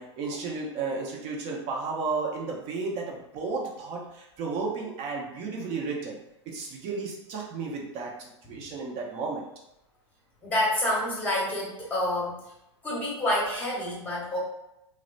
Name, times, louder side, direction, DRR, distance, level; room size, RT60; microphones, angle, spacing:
voice 1, 0.0-6.2 6.5-9.4, right 4 dB, 45° right, -1 dB, 0.7 m, -33 dB
voice 2, 10.4-12.4 12.8-14.4, left 1 dB, 10° left, -4 dB, 1.2 m, -28 dB
2.9 x 2.0 x 2.5 m, 0.86 s
hypercardioid pair, 105°, 15 cm